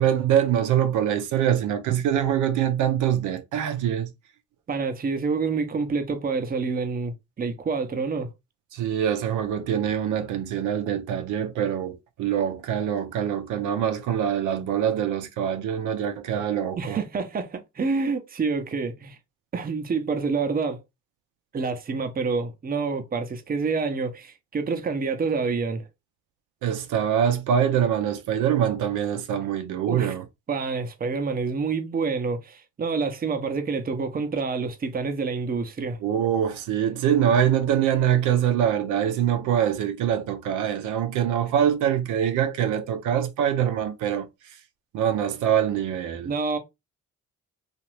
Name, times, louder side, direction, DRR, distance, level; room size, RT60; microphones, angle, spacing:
voice 1, 0.0-4.1 8.7-17.0 26.6-30.2 36.0-44.3 44.9-46.3, right 9 dB, 80° right, 0.6 m, -24 dB
voice 2, 4.7-8.3 16.8-19.2 19.5-20.8 21.5-25.9 29.9-30.1 30.5-36.0 46.2-46.6, right 4 dB, 30° right, 0.6 m, -27 dB
2.9 x 2.4 x 3.1 m
cardioid pair, 90°, 30 cm